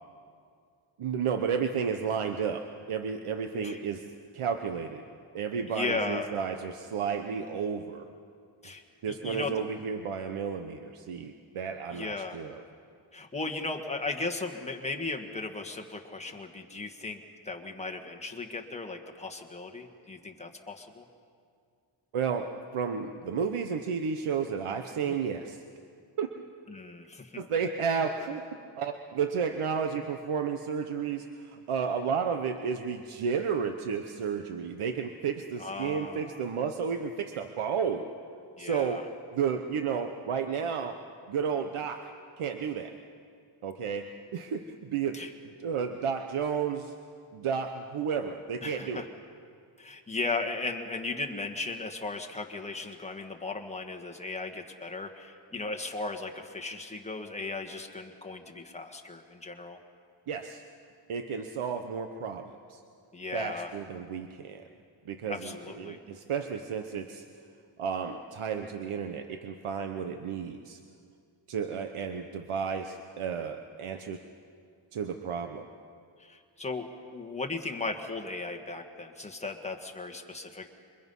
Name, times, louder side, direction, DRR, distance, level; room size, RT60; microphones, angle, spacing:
voice 1, 1.0-4.1 4.3-5.0 5.3-8.1 9.0-12.6 22.1-25.6 26.2-26.3 27.4-28.4 28.8-38.1 38.6-39.0 39.3-41.0 41.3-42.1 42.4-42.9 43.6-44.0 44.3-45.2 45.6-46.9 47.3-49.0 60.3-60.6 61.1-62.8 63.3-64.6 65.1-67.2 67.8-70.8 71.5-74.2 74.9-75.6, right 6 dB, 85° right, 6 dB, 1.1 m, -32 dB
voice 2, 5.7-6.3 8.6-8.8 9.1-9.6 11.9-12.4 13.1-21.0 25.0-25.2 26.7-27.4 35.6-36.4 38.6-39.0 45.1-45.3 48.6-49.1 49.8-59.8 63.1-63.7 65.3-66.0 76.2-80.7, left 3 dB, 15° left, 3 dB, 1.5 m, -36 dB
27.5 x 24.0 x 5.5 m, 2.3 s
wide cardioid pair, 180°, 49 cm